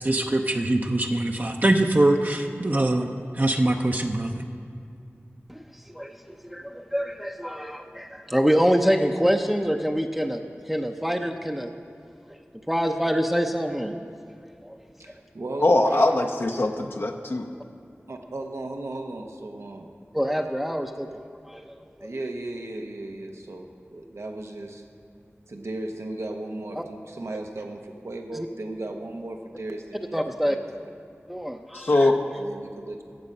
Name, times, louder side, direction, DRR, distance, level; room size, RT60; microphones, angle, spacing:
voice 1, 0.0-3.1 3.3-4.4, right 1 dB, 40° right, 3 dB, 0.7 m, -23 dB
voice 2, 5.5-11.7 12.3-12.4 12.7-14.0 14.6-14.8 15.1-15.2 20.1-21.1 21.4-22.1 26.8-26.9 28.3-28.5 30.1-30.6 31.3-32.1, equal, 5° right, 3 dB, 0.6 m, -26 dB
voice 3, 15.0-16.1 18.1-19.9 22.0-24.8 25.5-30.2 30.5-30.8 32.3-33.0, right 2 dB, 85° right, 3 dB, 1.0 m, -36 dB
voice 4, 15.6-17.4 31.7-32.2, left 2 dB, 60° left, 3 dB, 0.6 m, -21 dB
14.0 x 7.4 x 5.4 m, 2.5 s
wide cardioid pair, 45°, 5 cm